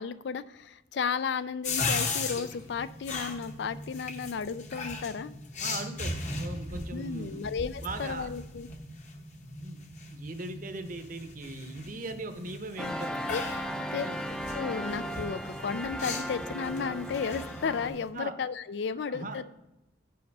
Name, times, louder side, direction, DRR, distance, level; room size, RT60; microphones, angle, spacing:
voice 1, 0.0-5.3 6.9-8.7 13.3-13.4 13.8-14.1 14.5-19.4, left 6 dB, 65° left, 14 dB, 0.4 m, -33 dB
sound 1, 1.6-18.1, left 3 dB, 40° left, 1.0 m, -38 dB
voice 2, 5.6-7.5 7.8-8.3 9.6-9.8 10.1-13.3 13.7-14.1 18.1-18.3 19.0-19.4, right 2 dB, 45° right, 8 dB, 0.8 m, -39 dB
sound 2, 12.8-17.9, equal, 5° left, 0.5 m, -36 dB
9.7 x 5.7 x 5.3 m, 0.99 s
head